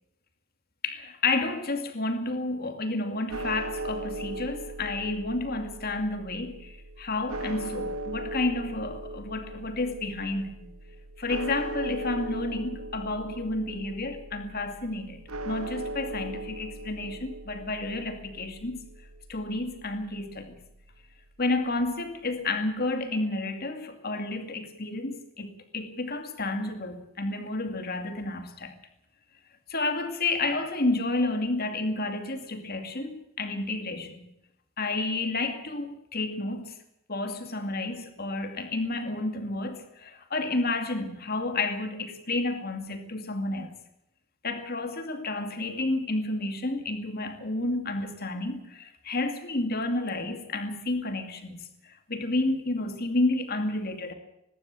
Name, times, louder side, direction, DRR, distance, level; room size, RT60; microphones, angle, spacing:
voice 1, 0.8-10.7 11.2-15.2 15.5-18.8 19.3-20.6 21.4-28.7 29.7-34.3 34.8-36.8 37.1-43.7 44.4-54.1, left 2 dB, 45° left, 2.4 m, -30 dB
sound 1, 3.3-21.5, right 2 dB, 80° right, 1.9 m, -39 dB
20.0 x 16.5 x 7.9 m
head